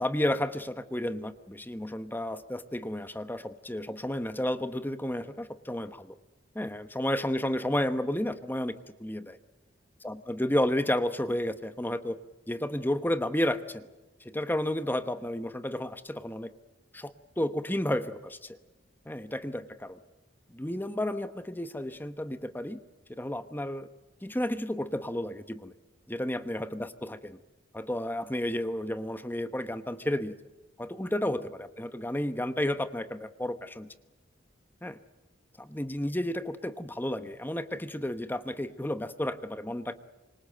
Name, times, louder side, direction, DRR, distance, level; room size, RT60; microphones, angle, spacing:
voice 1, 0.0-6.2 6.5-8.7 9.0-9.4 10.0-12.2 12.5-13.8 14.2-16.5 16.9-18.6 19.1-20.0 20.5-22.8 23.2-23.9 24.2-25.7 26.1-27.4 27.7-30.3 30.8-33.9 34.8-35.0 35.6-39.9, left 1 dB, 10° left, 11 dB, 1.0 m, -32 dB
26.5 x 23.5 x 7.8 m, 1.1 s
head